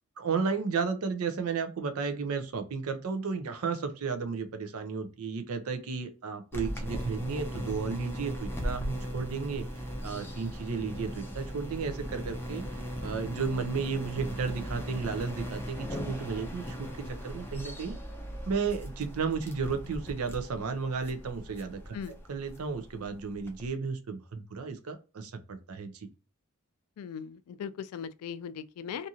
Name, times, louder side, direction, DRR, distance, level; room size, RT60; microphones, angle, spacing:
voice 1, 0.2-12.6 13.0-18.0 18.5-22.0 22.3-26.1, right 5 dB, 80° right, 0.5 m, -33 dB
sound 1, 6.5-23.7, equal, 10° left, 0.4 m, -38 dB
voice 2, 27.0-29.1, left 7 dB, 90° left, 0.3 m, -39 dB
2.6 x 2.5 x 2.7 m
head